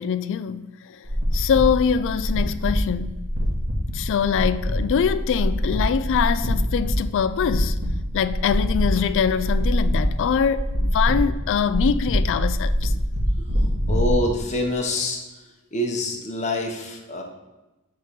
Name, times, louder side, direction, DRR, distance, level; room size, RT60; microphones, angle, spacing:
voice 1, 0.0-3.2 3.9-7.8 8.1-12.9, left 7 dB, 55° left, 0.3 m, -23 dB
sound 1, 1.0-14.1, equal, 55° right, 1.6 m, -24 dB
voice 2, 13.9-15.2 15.7-17.2, left 1 dB, 30° left, 0.9 m, -25 dB
8.3 x 3.7 x 4.6 m
head